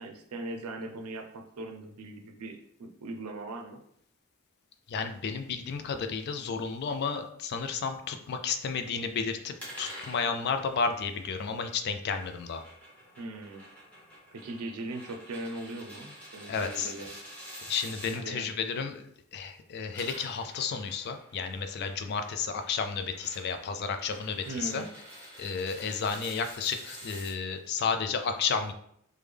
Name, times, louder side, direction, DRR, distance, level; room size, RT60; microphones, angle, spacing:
voice 1, 0.0-3.8 13.2-13.6 14.3-17.1 18.2-18.5 24.5-24.9, right 2 dB, 85° right, 4 dB, 0.5 m, -39 dB
voice 2, 4.9-12.6 16.5-16.9 17.6-19.0 19.3-24.8 25.4-28.7, left 5 dB, 50° left, 7 dB, 0.3 m, -32 dB
sound 1, 9.6-18.2 19.7-27.3, equal, 5° left, 1.0 m, -48 dB
3.4 x 2.2 x 3.3 m, 0.69 s
head